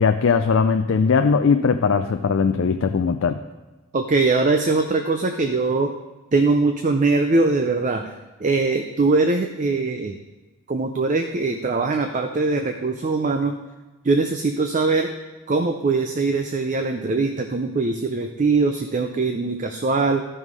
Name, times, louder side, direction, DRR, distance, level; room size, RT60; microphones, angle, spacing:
voice 1, 0.0-3.4, left 5 dB, 60° left, 7 dB, 0.4 m, -19 dB
voice 2, 3.9-6.0 6.3-8.1 8.4-10.2 10.7-13.6 14.0-15.1 15.5-20.3, right 3 dB, 35° right, 6 dB, 0.4 m, -21 dB
12.5 x 5.6 x 4.7 m, 1.2 s
head